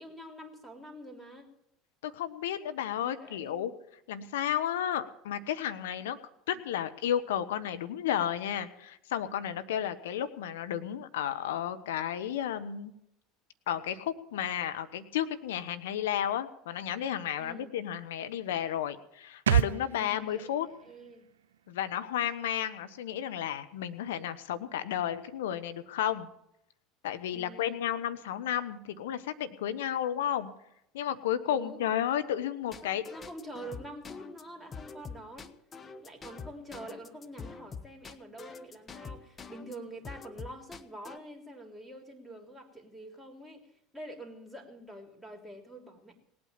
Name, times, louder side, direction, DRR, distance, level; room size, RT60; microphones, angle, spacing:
voice 1, 0.0-1.5 2.9-3.6 17.4-17.7 19.9-20.5 20.8-21.3 27.3-27.8 31.4-31.8 32.8-35.5 36.0-46.1, right 1 dB, ahead, 1 dB, 3.3 m, -46 dB
voice 2, 2.0-3.7 4.1-6.2 6.5-12.9 13.7-20.7 21.7-26.3 27.0-30.5 30.9-33.0, left 10 dB, 80° left, 11 dB, 1.1 m, -32 dB
sound 1, 19.5-23.0 23.2-23.3, right 10 dB, 90° right, 0.5 m, -32 dB
sound 2, 32.7-39.8 40.0-41.2, left 5 dB, 30° left, 1.0 m, -45 dB
18.5 x 8.8 x 7.4 m, 0.78 s
hypercardioid pair, 80°, 0 cm